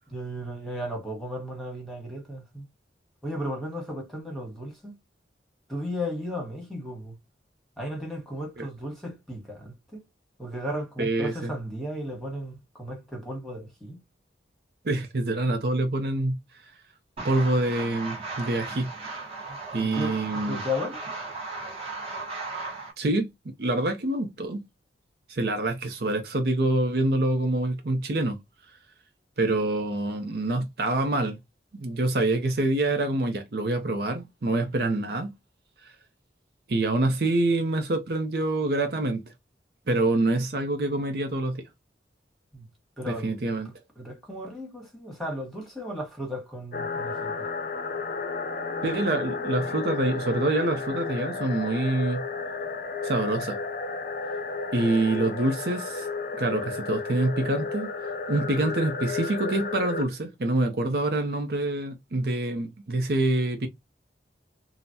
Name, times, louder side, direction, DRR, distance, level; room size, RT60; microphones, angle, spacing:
voice 1, 0.1-2.7 3.2-5.0 5.7-7.2 7.8-10.0 10.4-14.0 19.5-21.0 42.5-42.7 43.0-43.3 43.6-47.5, equal, ahead, 1.2 m, -35 dB
voice 2, 11.0-11.5 14.8-16.7 17.2-18.9 19.7-20.6 23.0-23.3 23.6-24.6 25.3-28.4 29.4-31.4 31.7-35.3 35.8-35.9 36.7-39.2 39.9-41.6 43.1-43.7 48.8-52.2 53.0-53.6 54.7-56.1 56.4-57.9 58.3-63.7, right 2 dB, 55° right, 0.6 m, -26 dB
sound 1, 17.2-22.9, right 3 dB, 30° right, 1.2 m, -36 dB
sound 2, 46.7-60.0, left 4 dB, 45° left, 0.5 m, -32 dB
3.8 x 2.0 x 2.6 m
head